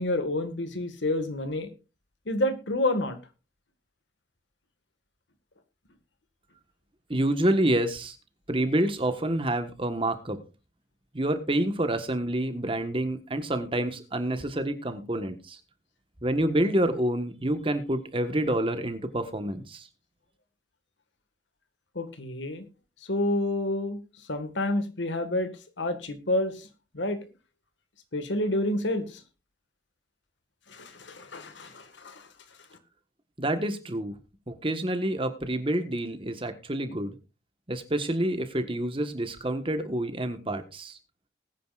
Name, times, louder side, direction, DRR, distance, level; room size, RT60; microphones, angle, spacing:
voice 1, 0.0-1.7 2.3-3.2 22.0-22.7 23.1-24.0 24.3-25.5 25.8-26.7 26.9-27.2 28.1-29.2 30.7-32.3, left 1 dB, 75° left, 9 dB, 1.8 m, -29 dB
voice 2, 7.1-8.1 8.5-10.4 11.1-15.6 16.2-19.9 33.4-34.1 34.5-37.1 37.7-41.0, right 1 dB, 30° right, 9 dB, 1.4 m, -28 dB
20.5 x 9.3 x 2.5 m, 0.31 s
head